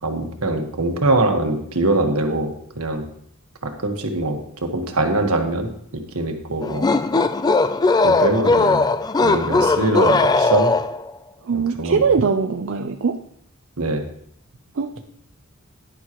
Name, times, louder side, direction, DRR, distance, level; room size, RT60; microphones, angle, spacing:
voice 1, 0.0-3.1 3.6-6.9 8.0-8.9 9.2-10.7 11.5-12.0 13.8-14.0, right 2 dB, 85° right, 4 dB, 1.4 m, -23 dB
sound 1, 6.6-11.1, left 3 dB, 20° left, 0.3 m, -18 dB
voice 2, 11.4-13.2 14.7-15.0, right 5 dB, 60° right, 5 dB, 0.5 m, -21 dB
11.0 x 10.5 x 3.0 m, 0.69 s
head